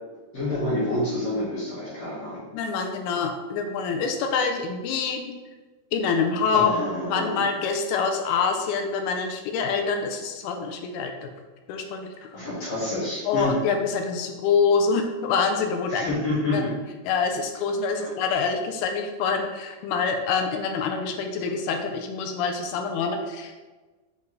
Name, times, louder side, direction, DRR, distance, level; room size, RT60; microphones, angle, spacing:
voice 1, 0.3-2.4 6.5-7.4 12.3-13.6 15.9-16.6 17.9-18.1, left 1 dB, 45° left, -7 dB, 2.5 m, -28 dB
voice 2, 2.5-5.3 5.9-6.7 7.1-11.3 11.7-12.4 13.3-16.1 16.5-16.6 17.0-23.5, left 5 dB, 85° left, 4 dB, 2.5 m, -26 dB
7.3 x 4.0 x 3.2 m, 1.3 s
omnidirectional pair, 4.5 m